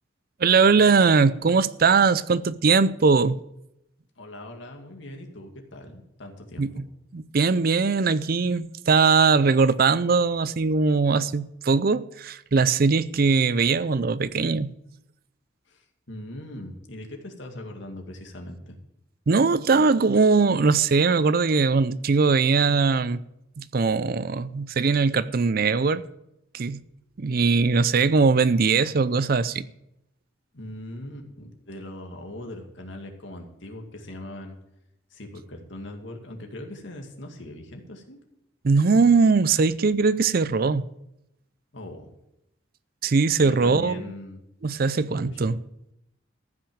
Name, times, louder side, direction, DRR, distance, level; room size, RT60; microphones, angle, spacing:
voice 1, 0.4-3.4 6.6-6.7 7.1-14.7 19.3-23.2 23.6-26.0 26.5-26.8 27.2-29.7 38.6-40.8 43.0-44.0 44.6-45.6, right 4 dB, 50° right, 0.5 m, -20 dB
voice 2, 4.2-6.8 15.7-18.8 30.5-34.6 35.1-38.2 41.7-42.1 43.4-44.4 45.1-45.5, left 1 dB, 65° left, 2.3 m, -40 dB
14.5 x 6.1 x 8.7 m
head